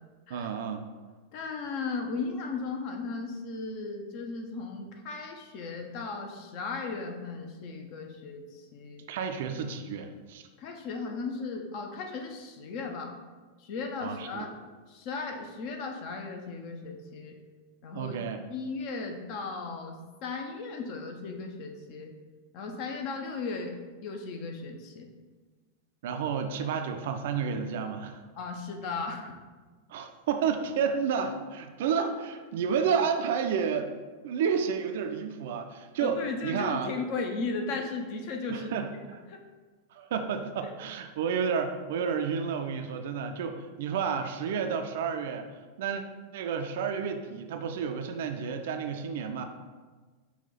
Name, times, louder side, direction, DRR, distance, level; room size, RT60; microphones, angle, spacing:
voice 1, 0.3-0.8 9.1-10.4 14.0-14.5 17.9-18.4 26.0-28.2 29.9-33.9 34.2-36.9 38.5-38.9 39.9-45.5 45.8-46.0 46.3-49.4, right 6 dB, 55° right, 6 dB, 0.4 m, -31 dB
voice 2, 1.3-9.1 10.6-13.2 13.6-14.5 14.9-17.4 17.8-18.2 18.5-22.1 22.5-23.8 24.0-25.1 28.4-29.4 36.0-38.7 39.3-39.4, left 4 dB, 45° left, 3 dB, 0.6 m, -36 dB
5.6 x 2.3 x 4.0 m, 1.4 s
figure-of-eight pair, 90°, 0 cm